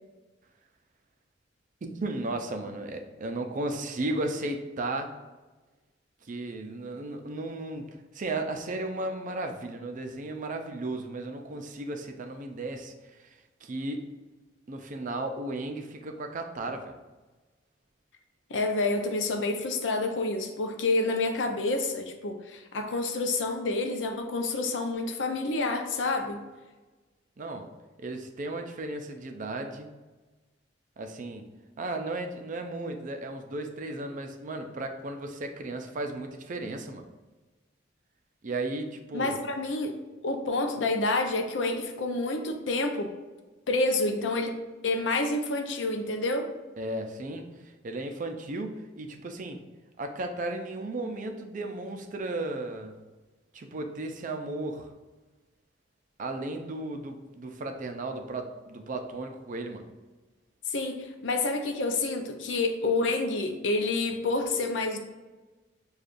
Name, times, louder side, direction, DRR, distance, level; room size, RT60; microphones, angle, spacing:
voice 1, 1.8-5.1 6.2-14.1 14.7-16.9 27.4-27.7 28.0-29.9 31.0-31.4 31.8-37.1 38.4-39.4 46.8-49.6 50.0-52.9 53.5-54.9 56.2-59.8, right 2 dB, 45° right, 5 dB, 0.4 m, -35 dB
voice 2, 18.5-26.4 39.1-39.9 40.2-43.1 43.7-44.6 44.8-46.5 60.7-65.0, left 2 dB, 75° left, 5 dB, 0.5 m, -28 dB
6.6 x 2.4 x 2.5 m, 1.2 s
head